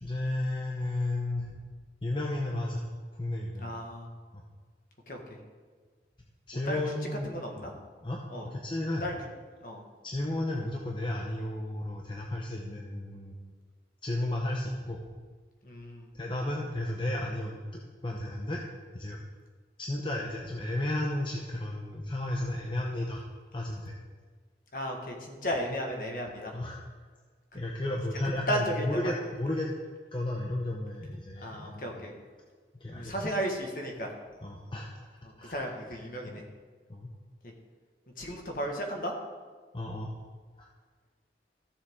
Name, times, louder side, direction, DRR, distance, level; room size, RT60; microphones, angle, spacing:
voice 1, 0.0-1.5 2.0-2.9 3.2-3.7 4.3-4.4 6.5-7.3 8.0-9.0 10.0-13.3 14.0-15.0 16.1-17.6 18.0-18.6 18.9-19.2 19.8-23.2 23.5-24.0 26.5-26.8 27.5-29.7 30.1-32.0 32.8-33.3 34.4-34.9 35.4-35.6 36.3-36.4 36.9-37.1 39.7-40.1 40.6-40.7, left 1 dB, 30° left, -1 dB, 0.8 m, -33 dB
voice 2, 3.6-4.1 5.1-5.2 6.7-6.8 7.2-7.7 8.3-8.5 9.0-9.2 9.6-9.8 15.6-16.1 24.7-26.5 27.5-27.6 28.2-29.1 31.4-32.1 32.9-34.1 35.2-36.4 38.2-39.1, equal, 50° left, 1 dB, 1.6 m, -34 dB
14.5 x 7.0 x 3.7 m, 1.5 s
head